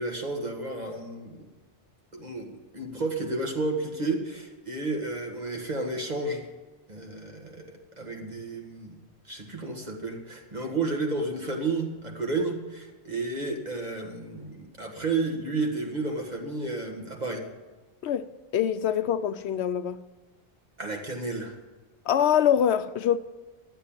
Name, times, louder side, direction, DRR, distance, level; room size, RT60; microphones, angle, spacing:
voice 1, 0.0-1.5 2.1-6.4 6.9-9.0 9.3-17.4 20.8-21.6, right 3 dB, 40° right, 1.9 m, -32 dB
voice 2, 18.5-20.0 22.1-23.2, left 9 dB, 75° left, 0.8 m, -24 dB
12.0 x 8.2 x 8.8 m
omnidirectional pair, 1.2 m